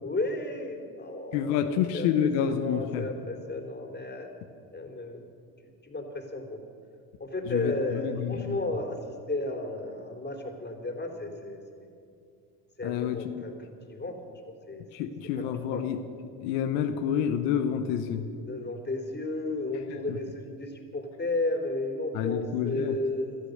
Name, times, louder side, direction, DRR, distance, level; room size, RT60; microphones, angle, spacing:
voice 1, 0.0-4.3 4.7-5.2 5.8-6.6 7.2-11.9 12.8-15.1 15.4-15.8 18.5-23.5, left 2 dB, 25° left, 3 dB, 3.3 m, -34 dB
voice 2, 1.3-3.1 7.5-8.6 12.8-13.4 14.9-16.0 16.4-18.3 22.1-23.0, left 9 dB, 85° left, 7 dB, 1.1 m, -28 dB
17.5 x 13.0 x 6.6 m, 2.5 s
supercardioid pair, 70°, 44 cm